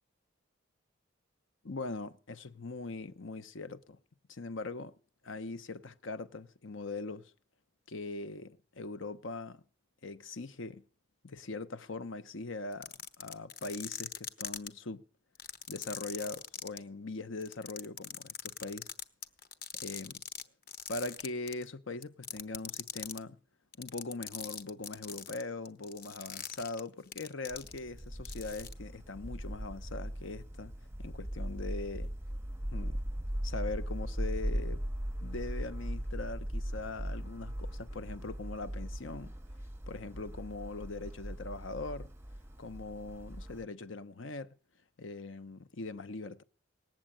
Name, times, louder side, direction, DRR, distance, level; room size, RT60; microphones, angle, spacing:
voice 1, 1.6-4.0 4.3-4.9 5.2-7.3 7.9-9.6 10.0-10.8 11.2-15.0 15.7-18.9 19.7-20.2 20.9-23.4 23.8-30.7 31.0-32.1 32.7-33.0 33.4-34.8 35.2-39.3 39.9-42.1 42.6-44.5 45.0-46.4, left 3 dB, 75° left, 0.9 m, -41 dB
sound 1, 12.7-14.7 15.4-16.8 17.4-20.4 20.7-21.7 22.0-23.2 23.7-28.0 28.3-28.7, left 7 dB, 50° left, 0.9 m, -41 dB
sound 2, 27.5-43.6, equal, 10° right, 0.7 m, -39 dB
19.0 x 7.6 x 8.9 m
head